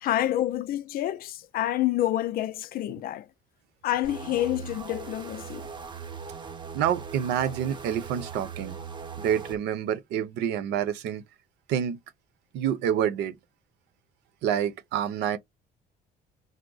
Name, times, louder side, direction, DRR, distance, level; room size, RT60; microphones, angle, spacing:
voice 1, 0.0-3.3 3.8-5.7, left 13 dB, 60° left, 0.4 m, -28 dB
sound 1, 4.0-9.6, right 6 dB, 30° right, 0.8 m, -40 dB
voice 2, 6.7-8.8 9.2-11.2 11.7-12.0 12.5-13.4 14.4-15.4, right 9 dB, 85° right, 0.8 m, -27 dB
4.9 x 2.1 x 3.9 m
cardioid pair, 110°, 17 cm